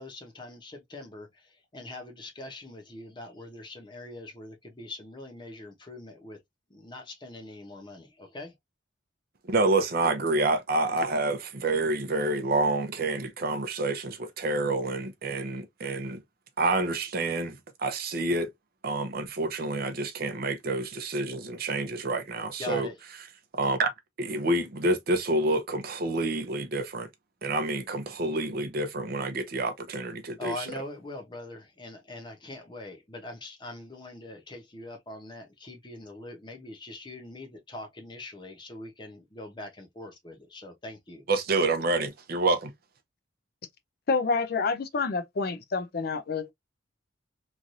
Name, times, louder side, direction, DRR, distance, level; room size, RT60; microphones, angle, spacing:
voice 1, 0.0-6.4 6.7-8.5 22.6-23.0 30.4-41.3, left 2 dB, 25° left, 0.9 m, -42 dB
voice 2, 9.5-16.2 16.6-18.5 18.8-22.9 23.5-23.9 24.2-27.1 27.4-30.7 41.3-42.7, right 2 dB, 50° right, 0.6 m, -28 dB
voice 3, 44.1-46.5, left 4 dB, 50° left, 0.5 m, -28 dB
3.1 x 2.5 x 2.6 m
head